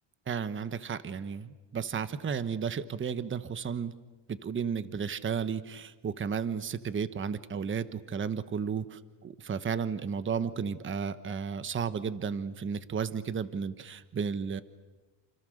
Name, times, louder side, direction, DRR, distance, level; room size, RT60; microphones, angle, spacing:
voice 1, 0.3-3.9 4.3-8.8 9.2-14.6, right 6 dB, 25° right, 13 dB, 1.1 m, -33 dB
30.0 x 27.5 x 6.5 m, 1.2 s
cardioid pair, 125°, 49 cm